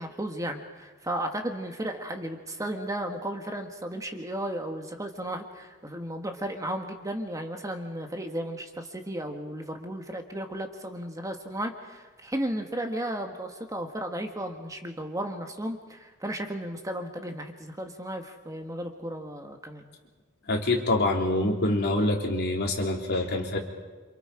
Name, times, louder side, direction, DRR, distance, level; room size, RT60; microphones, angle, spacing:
voice 1, 0.0-19.9, right 1 dB, 15° right, 4 dB, 1.5 m, -34 dB
voice 2, 20.5-23.6, left 2 dB, 50° left, 1 dB, 3.3 m, -25 dB
28.5 x 27.0 x 4.9 m, 1.3 s
head